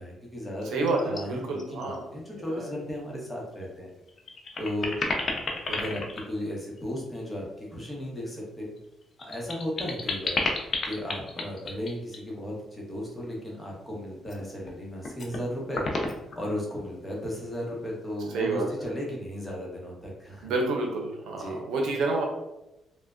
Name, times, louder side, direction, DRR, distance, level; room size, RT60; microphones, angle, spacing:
voice 1, 0.0-3.9 4.6-5.0 5.7-8.7 9.2-10.4 10.8-15.9 16.3-20.5 21.4-21.6, left 1 dB, 10° left, -3 dB, 0.9 m, -35 dB
voice 2, 0.7-2.0 2.5-2.7 5.6-5.8 18.3-18.7 20.4-22.2, right 3 dB, 80° right, 1 dB, 0.6 m, -29 dB
sound 1, 0.9-1.2 1.6-2.0 2.3-2.4 3.6-3.7 4.1-7.2 8.8-12.2 14.2-14.7 15.0-15.4 15.7-16.8, left 3 dB, 45° left, 0.5 m, -32 dB
3.2 x 2.1 x 2.4 m, 0.93 s
cardioid pair, 90°, 0 cm